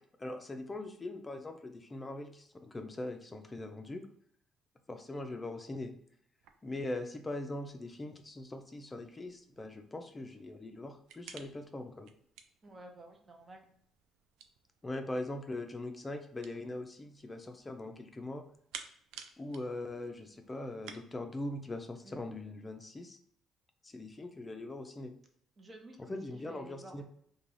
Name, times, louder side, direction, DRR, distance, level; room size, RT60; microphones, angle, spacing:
voice 1, 0.0-4.0 4.9-5.9 6.6-12.1 14.8-18.4 19.4-23.2 23.8-25.1 26.1-27.0, left 2 dB, 25° left, 5 dB, 0.4 m, -41 dB
sound 1, 6.4-21.0, right 7 dB, 75° right, 0.3 m, -56 dB
voice 2, 12.6-13.7 22.0-22.2 25.6-27.0, right 2 dB, 35° right, 4 dB, 0.7 m, -52 dB
2.3 x 2.2 x 3.2 m, 0.68 s
supercardioid pair, 60°, 0 cm